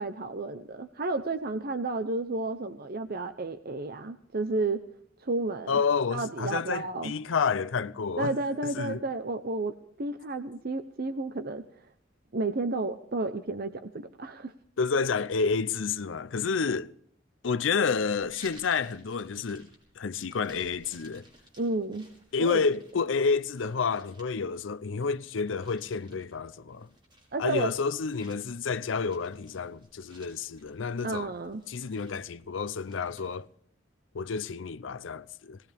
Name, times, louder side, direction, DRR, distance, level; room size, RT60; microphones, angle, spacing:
voice 1, 0.0-4.8 5.2-5.8 6.1-7.1 8.2-11.6 12.3-14.5 21.6-22.1 22.4-22.6 27.3-27.7 31.0-31.6, right 2 dB, 50° right, 0.8 m, -32 dB
voice 2, 5.7-8.3 8.6-9.0 14.8-16.9 17.4-19.7 20.0-21.2 22.3-26.9 27.4-31.3 31.7-33.5 34.1-35.6, left 5 dB, 75° left, 0.5 m, -29 dB
sound 1, 18.2-33.4, equal, 25° right, 5.7 m, -58 dB
21.5 x 18.5 x 3.5 m
head